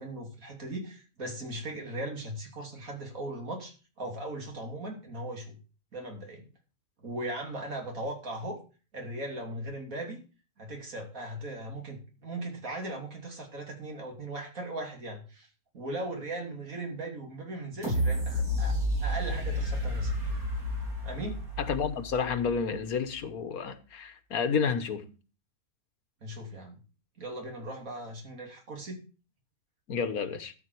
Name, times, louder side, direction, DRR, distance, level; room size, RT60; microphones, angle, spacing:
voice 1, 0.0-5.6 5.9-6.5 7.0-8.6 8.9-10.2 10.6-15.5 15.7-20.3 21.0-21.4 26.2-26.8 27.2-29.0, right 1 dB, 70° right, 3.3 m, -38 dB
sound 1, 17.8-22.7 23.2-23.3, equal, 85° right, 4.5 m, -30 dB
voice 2, 21.6-25.1 29.9-30.5, left 6 dB, 85° left, 1.6 m, -30 dB
12.5 x 8.0 x 4.6 m
omnidirectional pair, 1.5 m